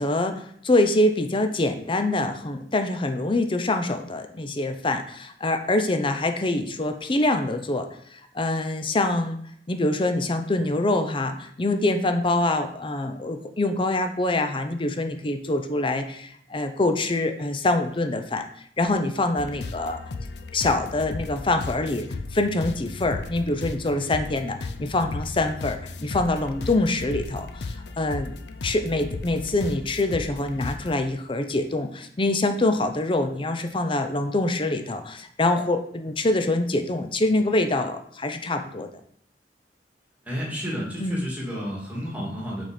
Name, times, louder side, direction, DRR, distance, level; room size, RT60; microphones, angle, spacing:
voice 1, 0.0-9.4 9.7-18.5 18.8-20.0 20.5-28.3 28.6-38.9 41.0-41.2, left 2 dB, 30° left, 7 dB, 0.6 m, -25 dB
sound 1, 19.4-31.0, left 3 dB, 70° left, 0.6 m, -35 dB
voice 2, 40.2-42.6, equal, 10° right, -4 dB, 2.1 m, -31 dB
6.2 x 4.2 x 5.1 m, 0.65 s
head